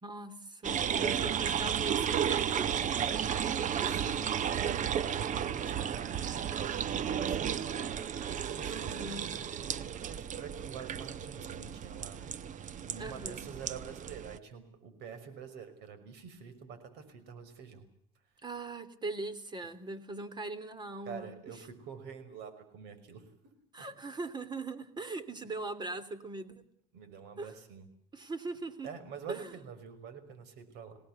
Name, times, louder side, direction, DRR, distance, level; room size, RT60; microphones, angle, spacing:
voice 1, 0.0-2.7 3.4-4.1 8.7-9.3 13.0-13.5 18.4-21.4 23.7-26.6 27.4-27.5 28.1-28.9 29.3-29.5, right 3 dB, 25° right, 15 dB, 3.1 m, -40 dB
sound 1, 0.6-14.4, right 8 dB, 45° right, 1.2 m, -33 dB
voice 2, 0.8-1.4 3.2-12.3 12.8-17.8 21.1-23.5 23.8-23.9 26.9-27.9 28.8-31.0, right 6 dB, 70° right, 11 dB, 5.7 m, -47 dB
26.0 x 18.5 x 8.2 m, 0.69 s
supercardioid pair, 90°, 18 cm